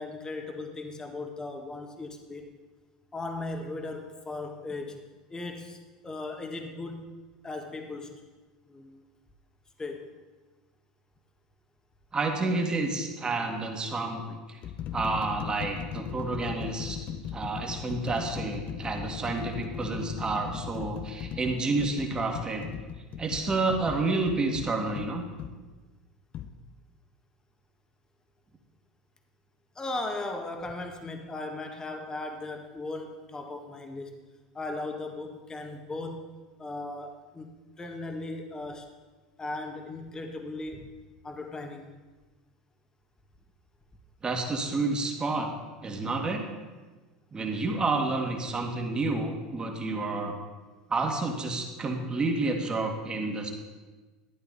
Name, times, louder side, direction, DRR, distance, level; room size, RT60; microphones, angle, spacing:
voice 1, 0.0-2.5 3.1-5.0 5.3-7.1 7.4-8.2 8.7-9.0 9.8-10.1 29.7-34.2 34.5-36.3 36.6-38.9 39.4-40.9 41.2-41.9, left 2 dB, 20° left, 4 dB, 1.5 m, -37 dB
voice 2, 12.1-14.6 14.9-17.0 17.3-22.7 23.2-25.3 44.2-45.5 45.8-46.4 47.3-50.3 50.9-53.5, right 3 dB, 25° right, 3 dB, 1.9 m, -29 dB
sound 1, 12.3-12.6 13.5-13.6 14.3-25.6 26.3-26.5, left 8 dB, 45° left, 0.8 m, -38 dB
12.5 x 10.0 x 4.1 m, 1.3 s
hypercardioid pair, 85°, 4 cm